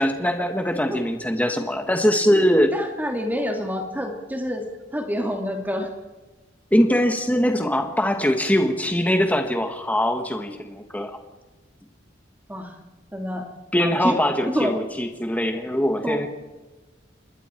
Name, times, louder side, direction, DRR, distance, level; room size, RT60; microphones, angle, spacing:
voice 1, 0.0-2.7 6.7-11.2 13.7-16.3, equal, 10° left, 5 dB, 1.6 m, -22 dB
voice 2, 2.7-4.6 4.9-5.9 12.5-12.8 13.1-13.5 13.8-14.2 14.5-14.7 16.0-16.2, equal, 10° right, 2 dB, 2.6 m, -27 dB
27.0 x 21.5 x 4.5 m, 1.2 s
head